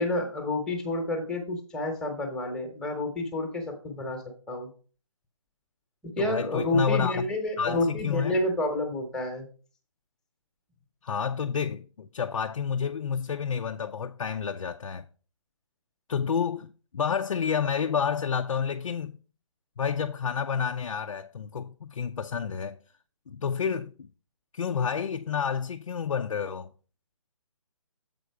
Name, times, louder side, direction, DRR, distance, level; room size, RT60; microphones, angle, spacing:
voice 1, 0.0-4.2 4.5-4.7 6.2-9.5, left 1 dB, 5° left, 1.0 m, -29 dB
voice 2, 6.2-7.3 7.6-8.4 11.0-15.1 16.1-19.2 19.8-22.8 23.3-24.1 24.5-26.7, left 6 dB, 75° left, 0.6 m, -29 dB
7.6 x 5.1 x 4.7 m
hypercardioid pair, 160°, 17 cm